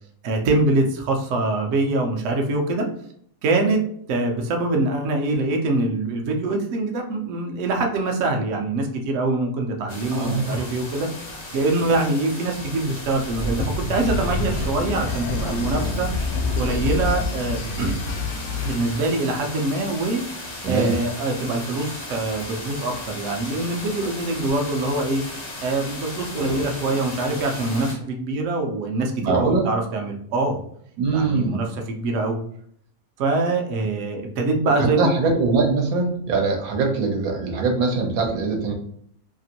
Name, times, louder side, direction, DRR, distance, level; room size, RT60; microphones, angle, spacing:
voice 1, 0.2-2.9 3.4-3.8 4.1-11.1 11.5-16.1 16.5-18.0 18.6-20.2 20.7-25.2 25.6-30.6 31.1-32.4 33.2-35.1, right 2 dB, 70° right, 2 dB, 0.9 m, -24 dB
sound 1, 9.9-28.0, left 2 dB, 40° left, 0.4 m, -36 dB
voice 2, 10.1-10.7 20.6-21.0 29.2-29.7 31.0-31.6 34.8-38.7, right 3 dB, 85° right, 1 dB, 1.2 m, -22 dB
sound 2, 13.3-17.3, left 2 dB, 65° left, 0.8 m, -28 dB
sound 3, 13.9-19.0, left 3 dB, 90° left, 1.1 m, -30 dB
2.9 x 2.5 x 2.7 m, 0.64 s
omnidirectional pair, 1.5 m